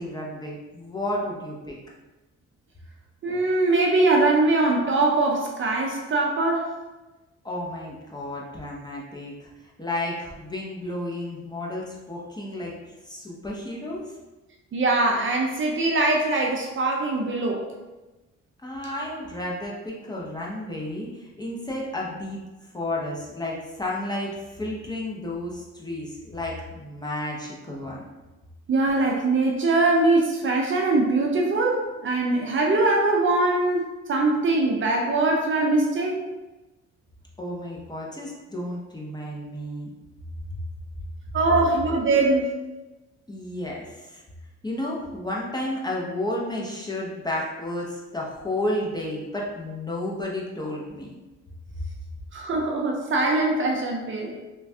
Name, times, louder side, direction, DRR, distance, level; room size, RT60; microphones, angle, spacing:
voice 1, 0.0-1.8 7.4-9.5 9.8-12.8 13.1-14.1 18.6-22.4 22.7-28.0 37.4-39.9 43.3-44.2 44.6-51.1, left 1 dB, 15° left, -4 dB, 0.6 m, -32 dB
voice 2, 3.2-6.7 14.7-17.6 28.7-36.2 41.3-42.5 52.3-54.3, right 2 dB, 40° right, 0 dB, 0.5 m, -22 dB
3.1 x 2.2 x 2.7 m, 1.1 s
cardioid pair, 90°, 30 cm